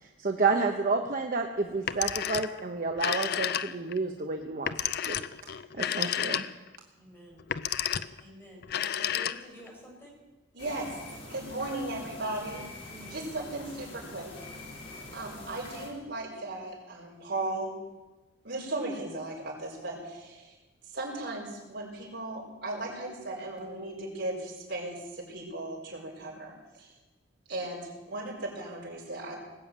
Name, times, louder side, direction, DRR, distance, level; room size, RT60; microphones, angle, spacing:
voice 1, 0.2-5.2 5.7-6.4, right 4 dB, 45° right, 3 dB, 0.9 m, -30 dB
Telephone, 1.7-2.6 2.9-4.0 4.7-6.8 7.4-8.2 8.6-9.7, left 10 dB, 55° left, 0.5 m, -31 dB
voice 2, 6.9-7.4 8.2-10.2 12.9-13.2, equal, 10° left, -2 dB, 4.6 m, -50 dB
voice 3, 10.5-10.9 11.3-12.7 13.1-14.3 15.1-17.7 18.4-20.5 20.9-26.9 27.5-29.4, right 2 dB, 65° right, -4 dB, 4.8 m, -36 dB
sound 1, 10.6-15.9, left 2 dB, 75° left, 4.6 m, -44 dB
19.5 x 7.1 x 8.7 m, 1.2 s
head